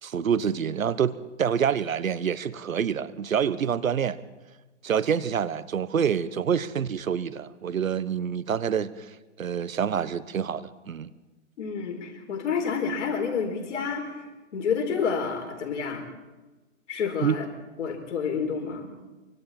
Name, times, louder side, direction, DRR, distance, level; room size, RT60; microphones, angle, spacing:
voice 1, 0.0-4.2 4.8-9.1 9.4-11.1 17.2-17.4, right 8 dB, 85° right, 1.2 m, -27 dB
voice 2, 11.6-14.3 14.5-16.0 16.9-17.5 17.8-18.9, left 6 dB, 60° left, 4.3 m, -29 dB
25.5 x 24.5 x 4.4 m
hypercardioid pair, 145°, 39 cm